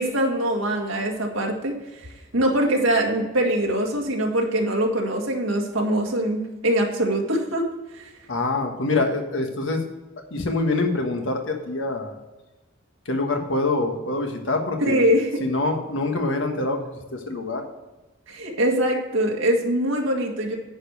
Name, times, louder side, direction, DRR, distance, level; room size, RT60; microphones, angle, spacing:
voice 1, 0.0-1.8 2.3-7.7 7.9-8.1 14.8-15.4 18.3-20.6, right 1 dB, 90° right, 0 dB, 1.8 m, -23 dB
voice 2, 8.3-9.8 10.3-12.1 13.0-15.1 15.4-17.6, left 2 dB, 70° left, 3 dB, 1.5 m, -25 dB
9.8 x 5.3 x 6.3 m, 1.1 s
head